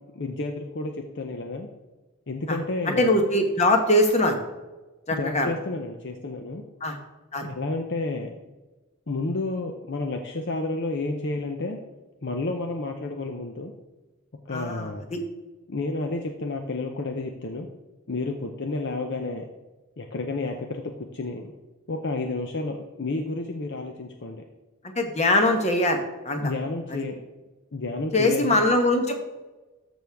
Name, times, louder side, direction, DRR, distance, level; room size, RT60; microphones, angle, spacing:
voice 1, 0.1-1.7 2.3-3.2 5.2-6.6 7.4-8.3 9.1-11.8 12.2-13.7 14.5-15.1 15.7-17.7 18.1-19.5 20.0-21.5 21.9-24.4 26.4-27.2 27.7-28.6, left 2 dB, 50° left, 4 dB, 0.7 m, -30 dB
voice 2, 2.9-4.4 5.1-5.5 6.8-7.0 7.3-7.4 14.5-15.2 25.0-26.0 26.2-26.5 28.1-29.1, left 1 dB, 30° left, 4 dB, 1.1 m, -22 dB
13.5 x 6.2 x 3.5 m, 1.1 s
head